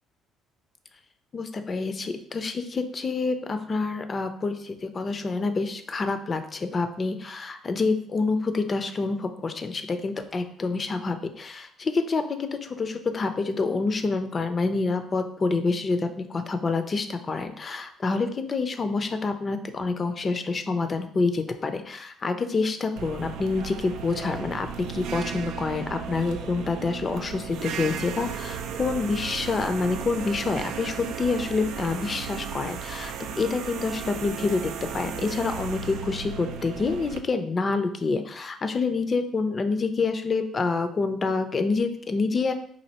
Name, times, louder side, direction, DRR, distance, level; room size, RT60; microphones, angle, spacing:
voice 1, 1.3-42.5, left 4 dB, 40° left, 8 dB, 0.5 m, -27 dB
sound 1, 23.0-37.2, right 7 dB, 75° right, 0.3 m, -35 dB
4.2 x 2.6 x 2.8 m, 0.63 s
supercardioid pair, 65°, 0 cm